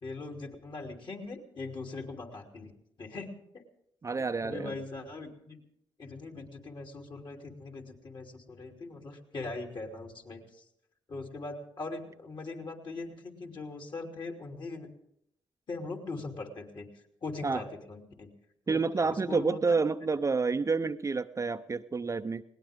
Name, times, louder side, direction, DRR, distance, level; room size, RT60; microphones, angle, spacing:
voice 1, 0.0-2.7 3.0-3.3 4.4-5.6 6.0-10.6 11.1-14.9 15.7-16.9 17.2-18.3 18.7-19.8, left 3 dB, 50° left, 2 dB, 3.1 m, -41 dB
voice 2, 4.0-4.7 17.4-17.6 18.7-22.4, right 4 dB, 30° right, 10 dB, 0.6 m, -29 dB
20.5 x 18.0 x 3.6 m, 0.76 s
supercardioid pair, 55°, 10 cm